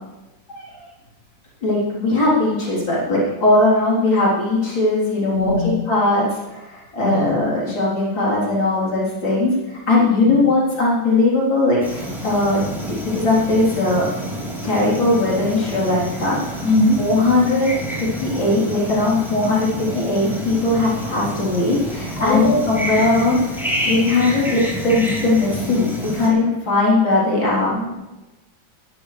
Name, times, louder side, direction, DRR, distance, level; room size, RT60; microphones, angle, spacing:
voice 1, 0.5-0.9 1.6-14.1 14.6-16.6 17.0-17.7 18.0-27.8, left 2 dB, 85° left, -6 dB, 4.5 m, -19 dB
voice 2, 5.3-5.7 7.0-7.4 10.2-10.3 16.6-17.0 22.2-23.0 27.7-27.9, left 1 dB, 60° left, -5 dB, 4.5 m, -21 dB
sound 1, 11.8-26.3, equal, ahead, 3.5 m, -29 dB
20.0 x 12.0 x 3.3 m, 1.1 s
omnidirectional pair, 2.0 m